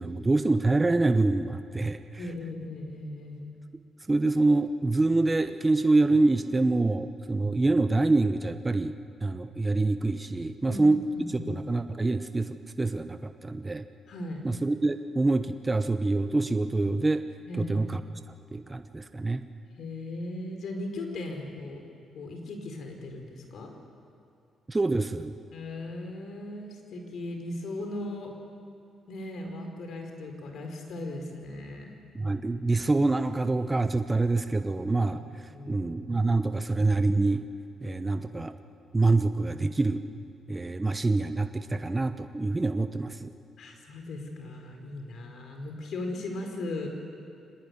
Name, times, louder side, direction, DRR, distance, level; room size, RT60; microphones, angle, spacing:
voice 1, 0.0-2.0 4.1-11.0 11.5-13.8 14.4-17.2 17.7-18.0 18.5-19.4 24.7-25.3 32.1-35.2 35.7-37.4 37.8-38.5 38.9-40.0 40.5-43.3, right 2 dB, 20° right, 9 dB, 1.0 m, -26 dB
voice 2, 2.2-3.5 10.6-10.8 11.1-11.5 14.1-14.4 17.5-17.8 19.7-21.8 22.1-23.7 25.5-28.4 29.1-31.9 35.0-35.1 35.5-35.9 43.6-46.9, left 2 dB, 65° left, 4 dB, 4.8 m, -37 dB
24.5 x 19.5 x 9.7 m, 2.5 s
cardioid pair, 90°, 0 cm